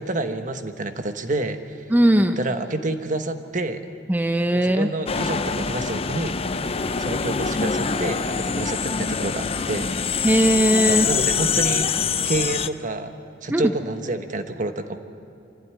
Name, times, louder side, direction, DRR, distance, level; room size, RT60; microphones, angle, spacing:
voice 1, 0.0-1.9 2.4-3.8 4.5-6.4 7.0-10.4 10.9-11.9 12.2-13.1 13.4-15.0, right 2 dB, 45° right, 7 dB, 1.2 m, -28 dB
voice 2, 1.9-2.4 4.1-4.9 10.2-11.1 13.5-13.6, right 1 dB, 10° right, 6 dB, 0.7 m, -18 dB
sound 1, 5.1-12.7, left 6 dB, 30° left, 0.6 m, -24 dB
25.0 x 15.5 x 9.5 m, 2.5 s
head